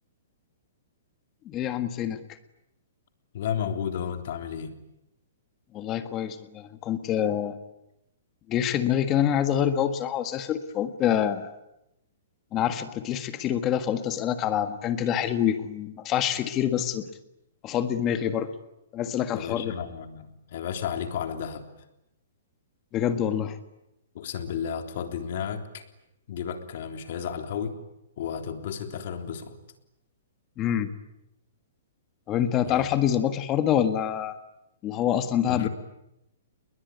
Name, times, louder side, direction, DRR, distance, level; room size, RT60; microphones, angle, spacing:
voice 1, 1.5-2.2 5.7-7.6 8.5-11.5 12.5-17.1 17.6-18.5 18.9-19.7 22.9-23.6 30.6-30.9 32.3-34.3 34.8-35.7, left 10 dB, 25° left, 10 dB, 1.6 m, -26 dB
voice 2, 3.3-4.8 19.3-21.7 24.1-25.8 26.3-27.8 28.2-29.6 32.6-32.9 35.4-35.7, left 8 dB, 55° left, 6 dB, 3.5 m, -33 dB
29.0 x 21.5 x 9.5 m, 0.86 s
hypercardioid pair, 155°, 0 cm